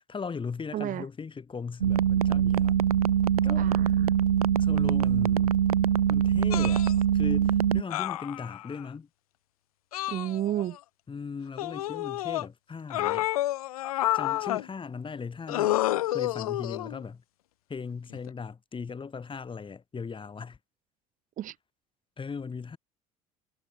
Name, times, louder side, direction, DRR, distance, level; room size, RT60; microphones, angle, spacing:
voice 1, 0.1-2.8 3.4-3.7 4.6-5.6 6.1-6.9 7.1-9.1 11.1-13.3 14.1-15.8 16.1-17.2 17.7-20.6 22.2-22.8, left 5 dB, 30° left, 3.5 m, -38 dB
voice 2, 0.7-1.0 3.6-4.2 10.1-10.8 21.4-21.5, right 12 dB, 45° right, 1.0 m, -32 dB
sound 1, 1.8-7.8, right 9 dB, 90° right, 0.5 m, -23 dB
sound 2, 6.5-6.9 7.9-8.8 9.9-10.8 11.6-12.5 12.9-14.7 15.5-17.0 18.1-18.3, left 15 dB, 80° left, 0.4 m, -30 dB
hypercardioid pair, 60°, 18 cm